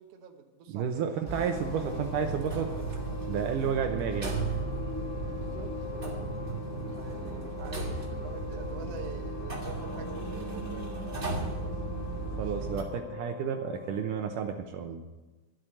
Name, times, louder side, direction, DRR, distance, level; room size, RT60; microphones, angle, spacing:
voice 1, 0.0-1.5 5.2-6.5 7.0-12.1 12.4-12.5, right 5 dB, 60° right, 4 dB, 1.9 m, -47 dB
voice 2, 0.7-2.8 3.3-4.4 12.4-15.0, right 7 dB, 75° right, 5 dB, 2.2 m, -31 dB
Wind instrument woodwind instrument, 1.2-14.6, left 6 dB, 80° left, 2.4 m, -44 dB
sound 1, 1.2-12.8, right 2 dB, 40° right, 0.7 m, -35 dB
12.0 x 7.8 x 8.9 m, 1.2 s
omnidirectional pair, 4.0 m